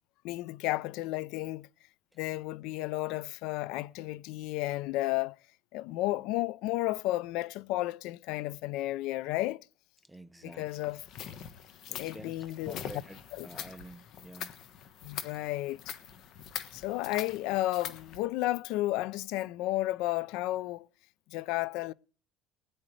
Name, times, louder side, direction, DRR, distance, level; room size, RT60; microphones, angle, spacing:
voice 1, 0.2-1.7 2.2-5.4 5.7-9.6 10.4-11.0 12.0-12.8 13.3-13.5 15.0-16.0 16.7-20.9 21.3-21.9, left 17 dB, 65° left, 0.5 m, -32 dB
voice 2, 10.0-10.7 11.9-12.3 12.7-14.5, right 1 dB, ahead, 0.6 m, -49 dB
sound 1, 10.7-18.2, left 9 dB, 45° left, 1.3 m, -44 dB
20.5 x 10.0 x 3.2 m
cardioid pair, 160°, 0 cm